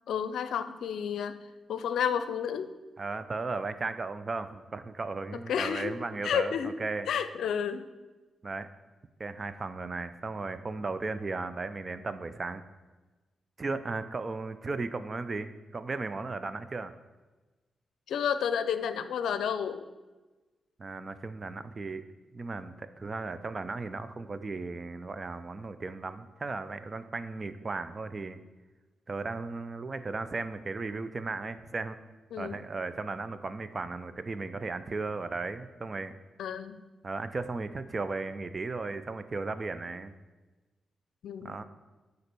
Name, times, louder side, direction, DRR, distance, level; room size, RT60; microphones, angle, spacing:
voice 1, 0.1-1.3 1.7-2.7 5.5-6.0 6.2-6.8 7.1-7.9 18.1-19.8 32.3-32.6 36.4-36.8 41.2-41.6, left 8 dB, 85° left, 11 dB, 0.5 m, -31 dB
voice 2, 3.0-7.1 8.4-8.7 9.2-12.6 13.6-16.9 20.8-22.0 22.3-28.4 29.1-32.0 32.4-36.1 37.0-40.1 41.4-41.6, right 3 dB, 40° right, 12 dB, 0.6 m, -36 dB
9.7 x 4.1 x 6.8 m, 1.2 s
cardioid pair, 70°, 0 cm